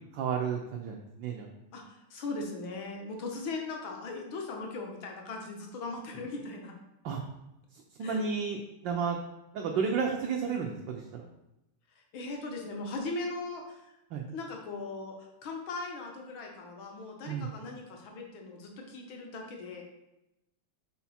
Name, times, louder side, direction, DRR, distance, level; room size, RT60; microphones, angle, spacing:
voice 1, 0.1-1.5 7.0-7.2 8.0-9.2 9.5-11.2 14.1-14.2 17.3-17.5, right 6 dB, 70° right, 1 dB, 1.2 m, -32 dB
voice 2, 2.1-6.7 8.0-8.2 12.1-14.0 14.3-15.2 15.4-19.8, left 3 dB, 65° left, 1 dB, 1.8 m, -39 dB
5.8 x 4.7 x 4.2 m, 0.90 s
omnidirectional pair, 2.4 m